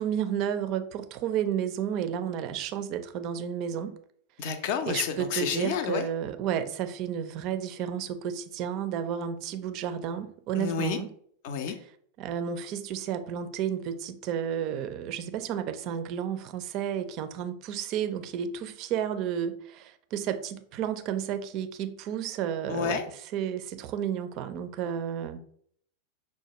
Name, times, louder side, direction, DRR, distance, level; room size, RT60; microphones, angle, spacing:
voice 1, 0.0-4.0 4.9-11.1 12.2-23.0 23.3-25.4, right 9 dB, 40° right, 0.4 m, -32 dB
voice 2, 4.4-6.1 10.6-11.0 11.4-11.8 22.7-23.0, left 7 dB, 50° left, 0.5 m, -30 dB
5.7 x 2.2 x 2.9 m
figure-of-eight pair, 90°, 0 cm